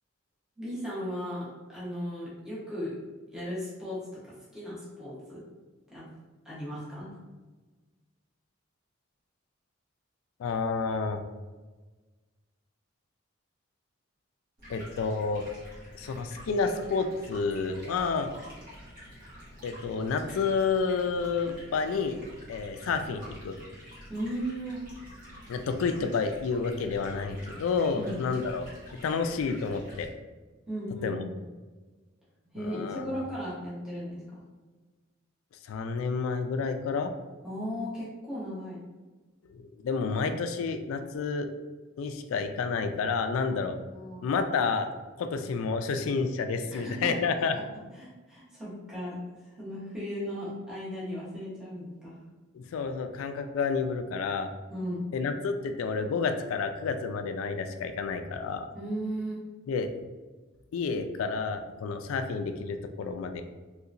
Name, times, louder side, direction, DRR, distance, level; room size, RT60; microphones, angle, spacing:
voice 1, 0.6-2.9 3.3-5.4 5.9-6.0 6.4-7.1 24.1-24.8 27.9-28.2 30.7-31.4 32.4-34.4 37.4-38.8 43.5-44.3 46.7-47.1 47.5-47.6 48.0-49.2 49.6-52.2 54.7-55.1 58.7-59.5, equal, 5° right, -9 dB, 0.9 m, -36 dB
voice 2, 10.4-11.2 14.7-15.5 15.9-18.3 19.6-22.2 22.5-23.6 25.5-28.7 29.0-30.1 31.0-31.2 32.6-33.1 35.6-37.1 39.5-41.5 42.0-43.8 44.2-44.9 45.2-47.5 52.5-54.5 55.1-58.7 59.7-60.1 60.7-63.4, left 4 dB, 80° left, 8 dB, 0.3 m, -30 dB
Stream, 14.6-30.1, equal, 45° right, 1.2 m, -48 dB
3.0 x 2.8 x 2.5 m, 1.3 s
head